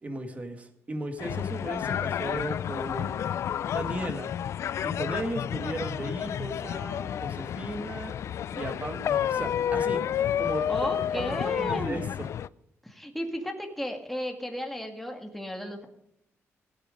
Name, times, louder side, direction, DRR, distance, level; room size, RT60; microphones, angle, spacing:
voice 1, 0.0-3.2 3.7-4.3 4.8-8.1 8.5-10.0 10.4-10.7 11.1-12.3, right 1 dB, 25° right, 7 dB, 1.9 m, -36 dB
sound 1, 1.2-12.5, left 9 dB, 65° left, 0.4 m, -30 dB
voice 2, 10.7-12.0 12.8-15.9, equal, 5° left, 3 dB, 2.0 m, -34 dB
16.0 x 9.3 x 5.2 m, 0.80 s
cardioid pair, 115°, 5 cm